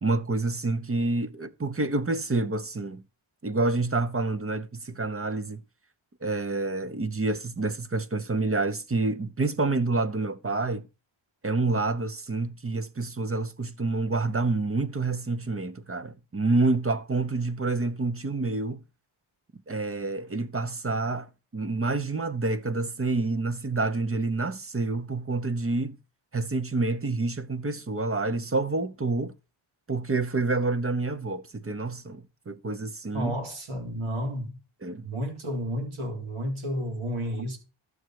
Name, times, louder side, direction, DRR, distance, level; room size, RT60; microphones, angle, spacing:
voice 1, 0.0-3.0 3.4-5.6 6.2-10.9 11.4-18.8 19.7-26.0 26.3-29.3 29.9-33.4 34.8-35.0, right 3 dB, 30° right, 0.8 m, -28 dB
voice 2, 33.1-34.6 35.0-37.6, equal, 80° right, 3.8 m, -31 dB
12.5 x 7.9 x 4.7 m
wide cardioid pair, 125°, 48 cm